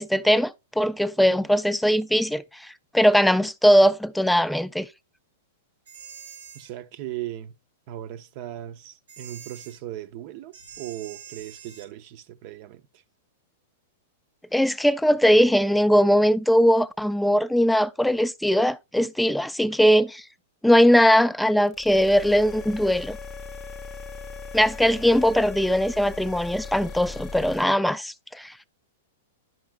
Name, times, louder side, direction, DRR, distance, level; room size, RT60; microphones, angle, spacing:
voice 1, 0.0-4.9 14.5-20.2 20.6-23.2 24.5-28.5, equal, ahead, 0.3 m, -20 dB
sound 1, 5.9-6.7 9.1-9.8 10.5-11.9, right 7 dB, 80° right, 0.8 m, -45 dB
voice 2, 6.5-7.5 7.9-13.0, right 13 dB, 50° right, 0.6 m, -38 dB
sound 2, 21.7-27.6, left 4 dB, 25° left, 0.7 m, -38 dB
10.5 x 5.6 x 2.2 m
hypercardioid pair, 130°, 0 cm